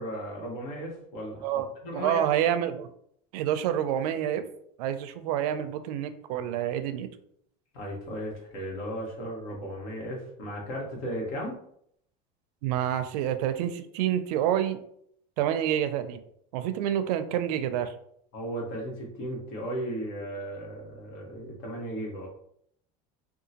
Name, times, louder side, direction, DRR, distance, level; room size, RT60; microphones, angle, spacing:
voice 1, 0.0-1.5 1.8-2.2 7.7-11.6 18.3-22.3, equal, 70° left, -1 dB, 1.3 m, -35 dB
voice 2, 1.9-2.9 3.3-4.4 4.8-7.1 12.6-14.8 15.4-16.2 16.5-17.9, right 10 dB, 85° right, 10 dB, 0.4 m, -28 dB
3.6 x 2.3 x 2.8 m, 0.69 s
cardioid pair, 160°, 20 cm